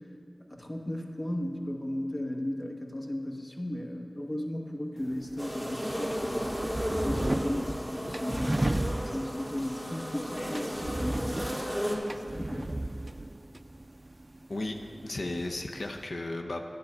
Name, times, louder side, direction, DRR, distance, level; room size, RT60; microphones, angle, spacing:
voice 1, 0.5-6.5 6.9-11.8 12.3-12.8, left 1 dB, 45° left, 2 dB, 1.0 m, -35 dB
sound 1, 5.0-16.0, right 1 dB, 35° right, 0.3 m, -36 dB
sound 2, 5.4-12.0, equal, 20° left, 1.8 m, -34 dB
voice 2, 15.0-16.6, left 2 dB, 85° left, 3 dB, 0.5 m, -34 dB
10.5 x 6.8 x 5.3 m, 2.8 s
wide cardioid pair, 45°, 0 cm